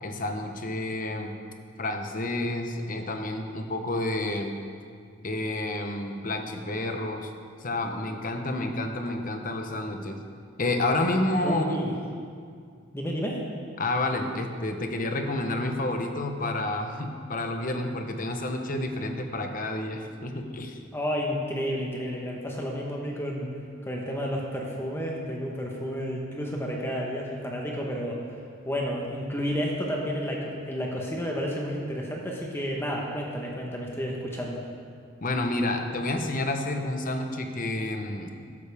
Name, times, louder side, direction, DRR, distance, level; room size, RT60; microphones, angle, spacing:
voice 1, 0.0-1.3 1.8-4.5 5.2-7.3 7.6-10.2 10.6-11.7 13.8-20.8 35.2-38.3, left 2 dB, 40° left, 5 dB, 1.0 m, -29 dB
voice 2, 11.4-11.9 12.9-13.4 20.9-23.5 23.9-28.4 28.7-34.6, equal, 10° left, -1 dB, 1.1 m, -31 dB
13.5 x 12.0 x 3.5 m, 2.2 s
head